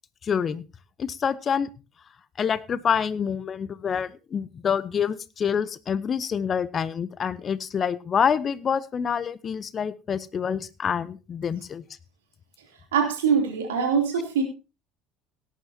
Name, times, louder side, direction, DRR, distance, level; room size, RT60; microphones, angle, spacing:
voice 1, 0.2-0.6 1.0-1.7 2.4-11.8, left 7 dB, 35° left, 18 dB, 0.8 m, -27 dB
voice 2, 12.9-14.4, right 6 dB, 70° right, 3 dB, 3.1 m, -23 dB
17.5 x 10.0 x 2.8 m, 0.30 s
figure-of-eight pair, 65°, 0 cm